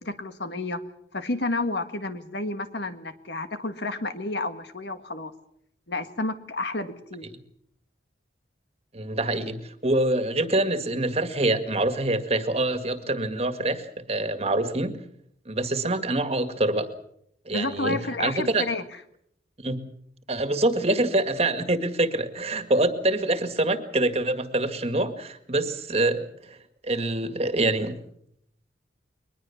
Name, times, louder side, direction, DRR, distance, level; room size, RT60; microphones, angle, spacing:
voice 1, 0.0-0.8 1.1-5.3 5.9-7.3 17.5-18.8, left 2 dB, 65° left, 9 dB, 1.8 m, -30 dB
voice 2, 8.9-15.0 15.5-16.9 17.5-18.7 19.6-19.8 20.3-26.6 26.8-28.0, right 2 dB, 35° right, 9 dB, 1.9 m, -25 dB
22.0 x 20.5 x 7.2 m, 0.72 s
head